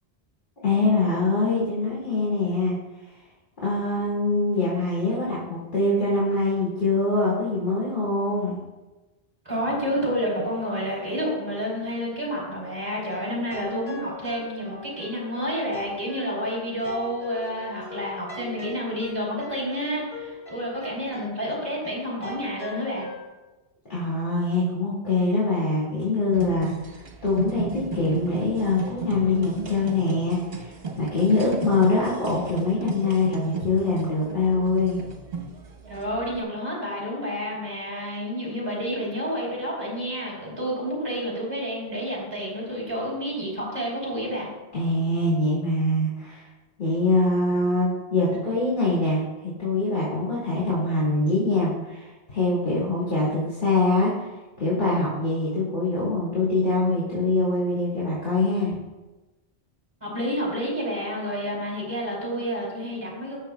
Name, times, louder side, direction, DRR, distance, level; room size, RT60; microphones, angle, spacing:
voice 1, 0.6-2.7 3.6-8.6 23.9-35.0 44.7-46.5 46.8-54.3 54.6-58.8, left 2 dB, 50° left, -8 dB, 2.5 m, -24 dB
voice 2, 9.4-23.1 35.9-44.5 60.0-63.4, equal, 25° right, -5 dB, 3.3 m, -29 dB
sound 1, 13.1-23.2, left 2 dB, 70° left, 3.2 m, -40 dB
sound 2, 26.3-36.4, right 5 dB, 70° right, 1.3 m, -35 dB
20.0 x 6.6 x 2.3 m, 1.1 s
omnidirectional pair, 1.0 m